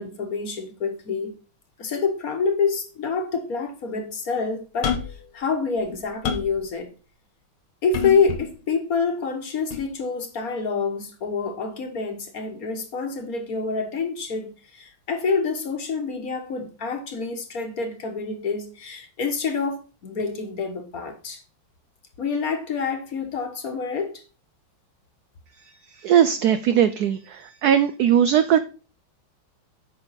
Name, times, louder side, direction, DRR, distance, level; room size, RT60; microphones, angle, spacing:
voice 1, 0.0-1.4 1.8-5.0 5.3-6.9 7.8-21.4 22.2-24.2, left 5 dB, 50° left, 1.4 m, -27 dB
sound 1, 4.8-5.3 5.8-6.6 7.9-8.5 9.7-9.9, left 7 dB, 85° left, 1.8 m, -28 dB
voice 2, 26.0-27.2 27.6-28.6, right 9 dB, 85° right, 0.8 m, -18 dB
8.8 x 5.6 x 4.0 m
omnidirectional pair, 2.2 m